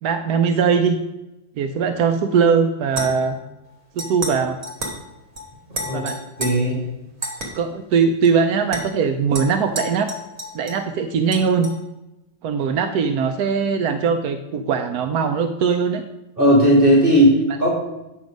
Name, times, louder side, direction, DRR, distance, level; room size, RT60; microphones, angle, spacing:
voice 1, 0.0-1.0 1.6-3.4 4.0-4.6 5.9-6.2 7.5-10.1 10.5-11.7 12.4-16.0, right 6 dB, 65° right, 6 dB, 1.0 m, -20 dB
sound 1, 2.9-3.4 4.0-4.4 4.6-5.0 5.3-5.5 5.7-6.5 7.2-7.5 8.2-8.3 8.7-8.8 9.3-10.9 11.3-11.7, equal, 40° right, 2.3 m, -30 dB
voice 2, 5.7-6.1 6.4-6.8 16.4-17.7, equal, 25° right, -4 dB, 2.8 m, -16 dB
10.0 x 7.0 x 5.2 m, 0.98 s
omnidirectional pair, 2.1 m